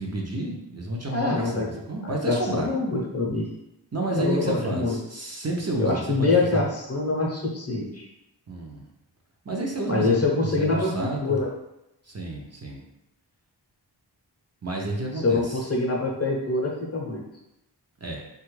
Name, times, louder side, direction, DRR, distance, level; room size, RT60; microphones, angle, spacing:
voice 1, 0.0-2.7 3.9-6.6 8.5-8.9 9.4-11.4 12.0-12.8 14.6-15.6 18.0-18.2, right 2 dB, 35° right, -1 dB, 0.6 m, -30 dB
voice 2, 1.1-1.6 2.0-3.5 4.1-4.9 5.8-8.1 9.9-11.5 15.2-17.2, left 3 dB, 35° left, -2 dB, 0.7 m, -25 dB
2.9 x 2.3 x 3.1 m, 0.86 s
wide cardioid pair, 50°, 43 cm